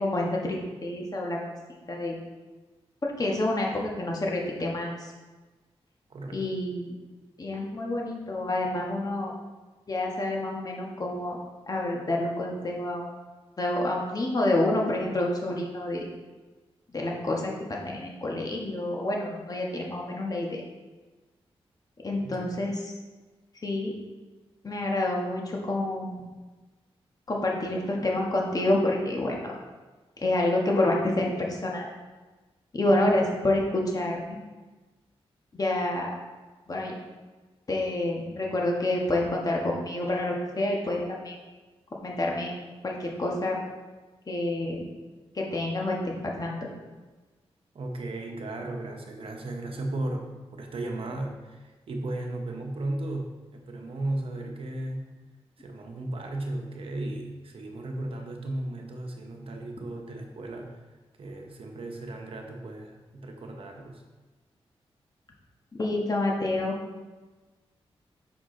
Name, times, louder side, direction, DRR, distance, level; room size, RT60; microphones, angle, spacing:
voice 1, 0.0-1.4 1.9-2.1 3.0-5.1 6.3-6.9 7.4-9.3 9.9-11.4 11.7-13.1 13.6-16.0 16.9-20.6 22.0-22.9 23.6-23.9 24.6-26.2 27.3-29.6 30.2-31.9 32.7-34.4 35.5-36.1 36.7-36.9 37.7-41.4 42.0-42.5 42.8-43.6 44.3-44.8 45.3-46.6 65.7-66.8, left 1 dB, 35° left, -1 dB, 1.4 m, -28 dB
voice 2, 6.1-6.5 22.2-22.5 47.7-55.1 55.6-60.8 61.2-64.0, right 2 dB, 60° right, 2 dB, 1.0 m, -35 dB
6.0 x 4.8 x 3.8 m, 1.2 s
cardioid pair, 75°, 10 cm